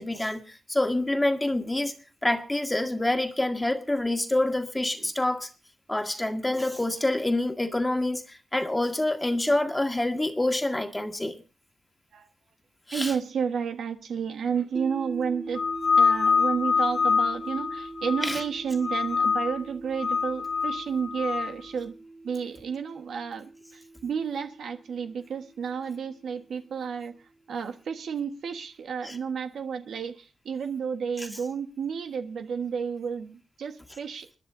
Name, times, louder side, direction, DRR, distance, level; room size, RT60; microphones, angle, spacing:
voice 1, 0.0-2.0 2.2-5.5 5.9-11.4 12.9-13.1 18.2-18.4 29.0-29.1, left 1 dB, 15° left, 5 dB, 1.9 m, -27 dB
voice 2, 12.9-15.6 16.0-21.9 22.2-34.4, right 6 dB, 85° right, 7 dB, 1.4 m, -31 dB
sound 1, 14.7-26.9, right 2 dB, 45° right, 2.8 m, -43 dB
sound 2, 15.6-18.5 18.8-19.6 20.0-21.5, left 5 dB, 60° left, 2.3 m, -25 dB
29.5 x 10.5 x 2.7 m, 0.32 s
cardioid pair, 80°, 0 cm